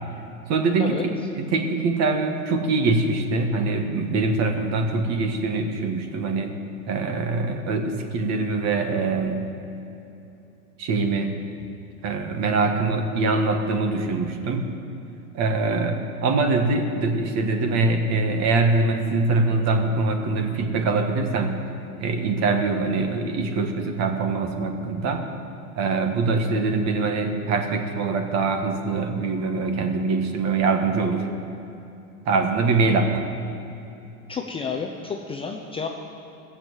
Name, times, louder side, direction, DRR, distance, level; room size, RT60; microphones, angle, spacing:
voice 1, 0.5-6.5 6.9-9.5 10.8-11.3 12.0-14.7 15.3-21.6 22.0-25.3 25.8-31.3 32.2-33.2, right 3 dB, 35° right, 5 dB, 1.6 m, -23 dB
voice 2, 34.3-35.9, left 5 dB, 15° left, 2 dB, 0.6 m, -30 dB
15.5 x 7.4 x 8.1 m, 2.9 s
supercardioid pair, 130°, 45 cm